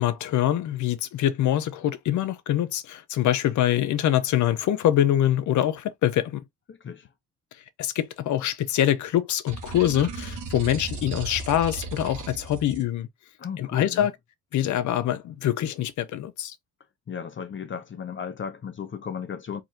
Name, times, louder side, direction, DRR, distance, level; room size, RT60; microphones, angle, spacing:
voice 1, 0.0-6.4 7.8-13.1 13.6-14.1 14.5-16.5, left 11 dB, 75° left, 0.7 m, -24 dB
voice 2, 6.7-7.1 13.4-14.1 17.1-19.6, left 7 dB, 40° left, 0.7 m, -35 dB
sound 1, 9.5-12.8, right 4 dB, 85° right, 1.2 m, -36 dB
4.1 x 2.8 x 2.7 m
cardioid pair, 90°, 30 cm